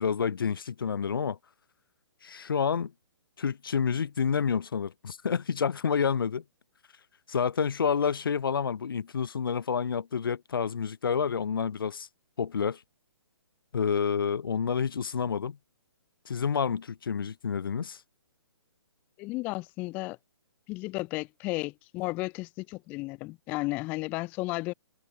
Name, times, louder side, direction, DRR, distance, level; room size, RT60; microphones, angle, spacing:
voice 1, 0.0-1.4 2.2-2.9 3.4-6.4 7.3-12.1 12.4-12.8 13.7-15.6 16.3-18.0, left 6 dB, 55° left, 0.8 m, -29 dB
voice 2, 19.2-20.2 20.7-24.7, left 22 dB, 10° left, 0.4 m, -33 dB
open air
figure-of-eight pair, 135°, 14 cm